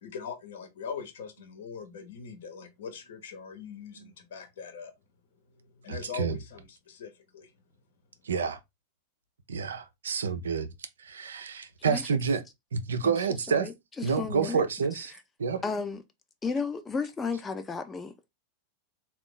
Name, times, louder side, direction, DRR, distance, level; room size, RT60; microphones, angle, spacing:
voice 1, 0.0-4.9 5.7-7.5, left 6 dB, 65° left, 1.1 m, -41 dB
voice 2, 5.9-6.4 8.2-8.6 9.5-10.7 11.0-12.4 12.7-13.7 14.0-15.1 15.4-15.6, right 5 dB, 75° right, 0.6 m, -29 dB
voice 3, 13.0-14.6 15.6-16.0 16.4-18.3, left 4 dB, 20° left, 0.7 m, -33 dB
3.8 x 2.5 x 3.7 m
figure-of-eight pair, 90°, 0 cm